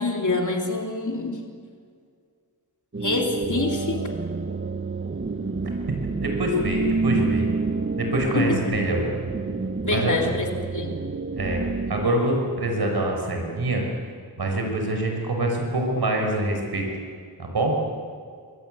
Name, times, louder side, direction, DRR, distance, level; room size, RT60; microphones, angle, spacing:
voice 1, 0.0-1.4 3.0-4.0 8.3-8.6 9.8-11.0, left 3 dB, 50° left, 2 dB, 3.3 m, -26 dB
sound 1, 2.9-12.1, right 4 dB, 30° right, 1.4 m, -28 dB
voice 2, 6.2-7.5 8.0-9.1 9.9-10.3 11.4-13.8 14.4-16.9 17.4-17.8, right 1 dB, 80° right, 2 dB, 6.2 m, -25 dB
27.0 x 22.0 x 9.5 m, 2.1 s
wide cardioid pair, 90°, 38 cm